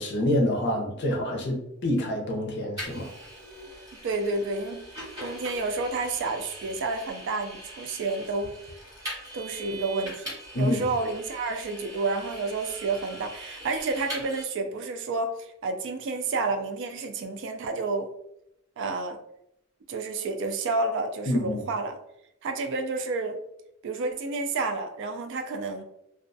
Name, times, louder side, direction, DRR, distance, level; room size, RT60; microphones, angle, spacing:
voice 1, 0.0-3.1 10.5-10.9 21.3-21.7, left 1 dB, 60° left, 0 dB, 0.6 m, -27 dB
Vehicle, 2.8-14.4, right 1 dB, 20° right, 1.3 m, -42 dB
voice 2, 4.0-4.8 5.2-8.5 9.3-18.1 18.8-19.2 19.9-22.0 22.4-23.4 23.8-25.8, right 3 dB, 60° right, 6 dB, 0.3 m, -30 dB
2.3 x 2.2 x 2.5 m, 0.80 s
head